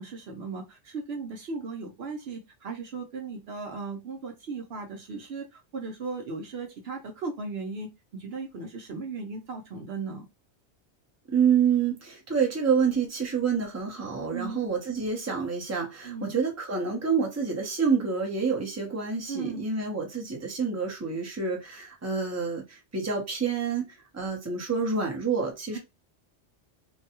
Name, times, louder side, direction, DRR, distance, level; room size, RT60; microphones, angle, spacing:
voice 1, 0.0-10.3 14.3-14.7 16.0-16.3 19.3-19.6 25.7-25.8, right 4 dB, 65° right, 0.9 m, -37 dB
voice 2, 11.3-25.8, right 6 dB, 15° right, 0.7 m, -28 dB
2.7 x 2.2 x 2.8 m
omnidirectional pair, 1.2 m